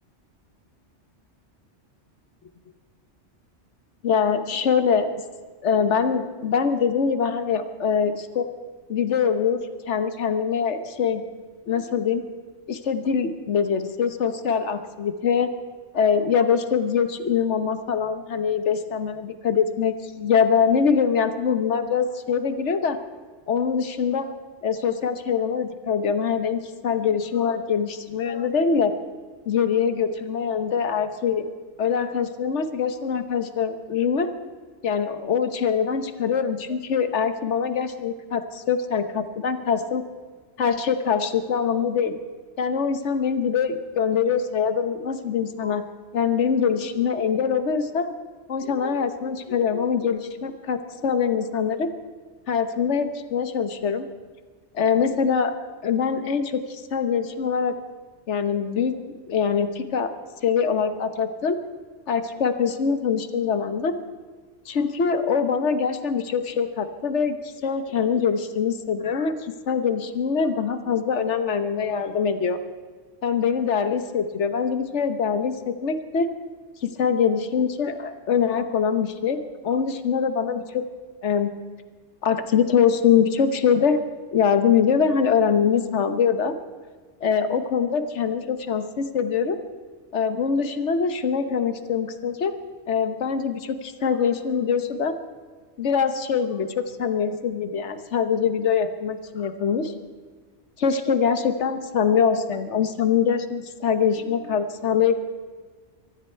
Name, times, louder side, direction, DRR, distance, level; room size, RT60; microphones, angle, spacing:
voice 1, 4.0-5.1 5.6-8.5 8.9-11.2 11.7-12.2 12.7-15.5 15.9-23.0 23.5-24.3 24.6-28.9 29.5-31.4 31.8-34.3 34.8-40.0 40.6-42.1 42.6-45.8 46.1-48.1 48.5-51.9 52.5-54.1 54.7-55.5 55.8-57.7 58.3-58.9 59.3-60.1 60.4-61.6 62.1-64.0 64.7-67.4 67.6-72.6 73.2-76.3 76.8-80.8 81.2-81.5 82.2-84.0 84.3-86.5 87.2-89.6 90.1-92.5 92.9-95.2 95.8-99.9 100.8-105.1, left 6 dB, 75° left, 9 dB, 1.4 m, -23 dB
23.5 x 13.5 x 4.5 m, 1.5 s
omnidirectional pair, 1.2 m